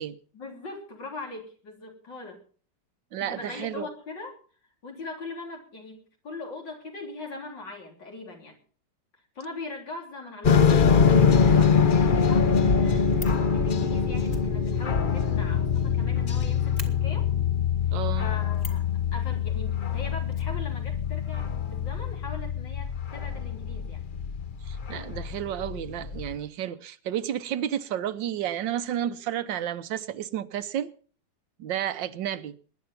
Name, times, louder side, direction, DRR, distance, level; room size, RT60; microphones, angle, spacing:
voice 1, 0.3-2.4 3.2-4.4 4.8-8.6 9.4-13.1 13.5-17.3 18.2-18.8 19.1-24.0, left 3 dB, 80° left, 4.3 m, -40 dB
voice 2, 3.1-3.9 17.9-18.3 24.7-30.9 31.6-32.5, right 10 dB, 85° right, 1.6 m, -31 dB
sound 1, 10.4-26.4, left 6 dB, 55° left, 0.6 m, -24 dB
Fire, 13.1-13.5 14.2-16.0 16.3-16.4 16.7-16.9 18.5-18.9 20.3-21.2 21.5-21.6 21.8-21.9, left 2 dB, 20° left, 2.0 m, -44 dB
20.5 x 10.5 x 5.7 m
omnidirectional pair, 1.9 m